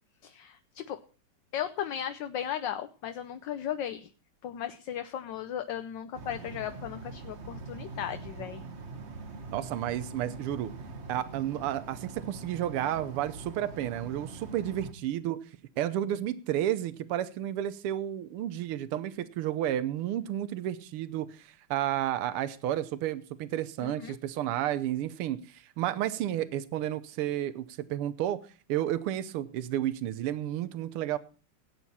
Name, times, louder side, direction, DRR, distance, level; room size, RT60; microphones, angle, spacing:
voice 1, 0.2-1.0 1.5-4.1 4.4-8.6 23.8-24.2, left 10 dB, 65° left, 9 dB, 1.3 m, -36 dB
sound 1, 6.1-14.9, right 3 dB, 40° right, 1.1 m, -43 dB
voice 2, 9.5-10.7 11.1-15.4 15.8-28.4 28.7-31.2, right 12 dB, 85° right, 14 dB, 1.7 m, -31 dB
17.5 x 9.0 x 4.2 m, 0.37 s
omnidirectional pair, 2.4 m